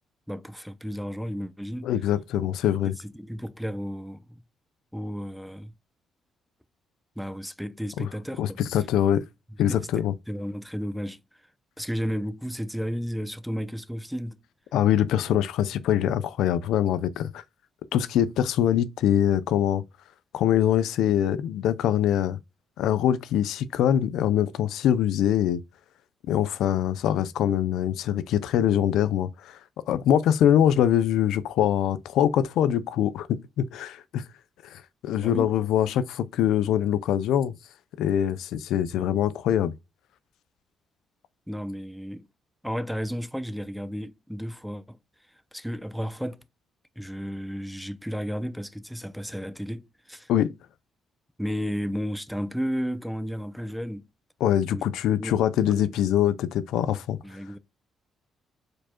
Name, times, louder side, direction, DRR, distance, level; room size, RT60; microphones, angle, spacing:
voice 1, 0.3-1.9 3.0-4.4 4.9-5.7 7.2-8.6 9.7-11.2 11.8-14.4 35.2-35.5 41.5-42.3 42.6-45.0 45.5-46.4 47.0-50.3 51.4-54.0 54.7-54.9 55.2-55.4 55.7-55.9 57.2-57.6, equal, ahead, 0.6 m, -33 dB
voice 2, 1.8-2.9 8.0-8.1 8.4-9.2 9.6-10.1 14.7-17.4 17.9-19.8 20.3-22.4 22.8-25.6 26.3-29.6 29.9-34.2 34.7-37.5 38.0-39.7 50.3-50.5 54.4-57.2, left 10 dB, 85° left, 0.6 m, -23 dB
4.8 x 4.5 x 4.4 m
cardioid pair, 90°, 0 cm